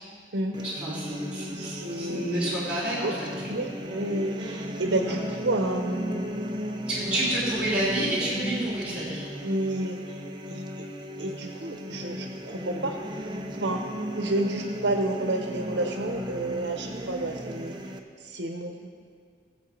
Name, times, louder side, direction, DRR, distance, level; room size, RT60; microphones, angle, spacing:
sound 1, 0.5-18.0, equal, 25° right, 0.7 m, -36 dB
voice 1, 0.6-3.5 5.1-5.2 6.9-9.3, right 1 dB, 5° right, -9 dB, 3.5 m, -29 dB
voice 2, 1.5-2.6 3.0-3.1 3.5-6.4 9.4-10.9 11.2-13.0 13.6-13.8 14.2-17.8 18.2-18.9, right 2 dB, 80° right, 4 dB, 0.9 m, -30 dB
20.5 x 7.5 x 4.4 m, 2.1 s
head